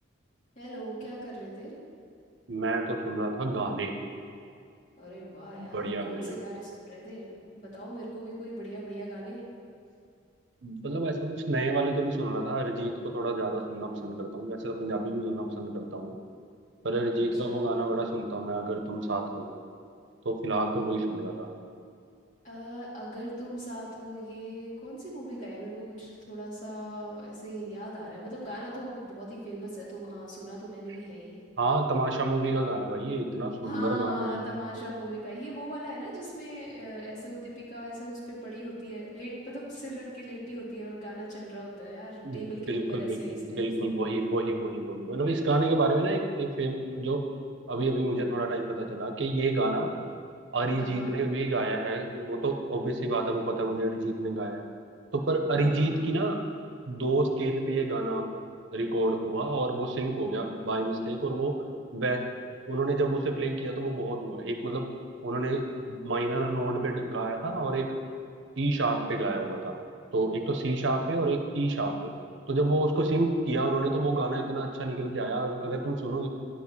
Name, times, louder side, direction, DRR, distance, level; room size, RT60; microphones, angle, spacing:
voice 1, 0.6-1.7 5.0-9.4 17.1-17.7 22.4-31.4 33.6-43.9 50.8-51.2 55.6-56.0, right 1 dB, 40° left, -7 dB, 2.5 m, -39 dB
voice 2, 2.5-4.0 5.6-6.3 10.6-16.1 16.8-19.5 20.2-21.5 31.6-34.4 42.2-47.2 47.7-49.9 50.5-54.6 55.1-56.4 56.9-58.3 58.7-61.6 61.9-62.2 62.7-64.9 65.2-67.9 68.6-69.8 70.1-71.9 72.5-76.3, right 2 dB, 75° right, 4 dB, 0.8 m, -29 dB
10.0 x 4.1 x 7.3 m, 2.3 s
head